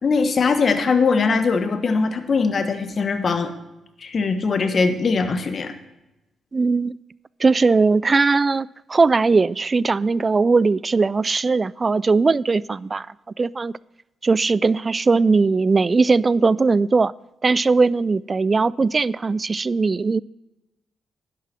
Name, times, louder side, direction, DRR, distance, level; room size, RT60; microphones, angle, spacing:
voice 1, 0.0-3.5 4.0-5.7, left 4 dB, 50° left, 8 dB, 1.2 m, -21 dB
voice 2, 6.5-6.9 7.4-13.1 13.4-13.7 14.2-17.1 17.4-20.2, right 4 dB, 35° right, 22 dB, 0.3 m, -19 dB
11.0 x 7.5 x 5.9 m, 0.96 s
hypercardioid pair, 45°, 0 cm